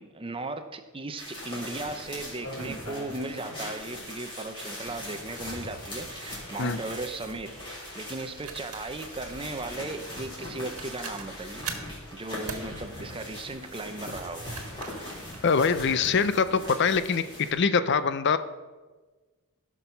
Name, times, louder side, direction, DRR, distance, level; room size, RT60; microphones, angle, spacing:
voice 1, 0.0-7.6 7.9-11.7 12.1-14.5, right 2 dB, 25° right, 8 dB, 0.7 m, -37 dB
sound 1, 1.2-17.5, left 1 dB, 20° left, 3.5 m, -41 dB
sound 2, 2.2-4.2 4.6-4.7 5.2-16.9, equal, 75° left, 3.7 m, -49 dB
sound 3, 6.0-6.2 8.4-9.4 10.4-10.5 10.8-12.0 12.5-12.7 14.2-16.1 16.7-17.1, right 6 dB, 80° right, 1.5 m, -41 dB
voice 2, 15.4-18.4, left 5 dB, 50° left, 13 dB, 0.5 m, -24 dB
15.0 x 6.2 x 5.6 m, 1.3 s
head